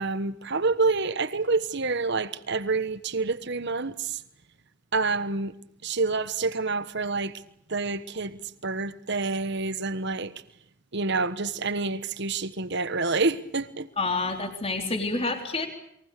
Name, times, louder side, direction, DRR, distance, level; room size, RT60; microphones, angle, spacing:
voice 1, 0.0-4.2 4.9-5.5 5.8-7.3 7.7-10.3 10.9-13.9, right 3 dB, 50° right, 1.3 m, -28 dB
voice 2, 14.0-15.7, left 3 dB, 25° left, 3.7 m, -28 dB
29.0 x 23.0 x 6.8 m
head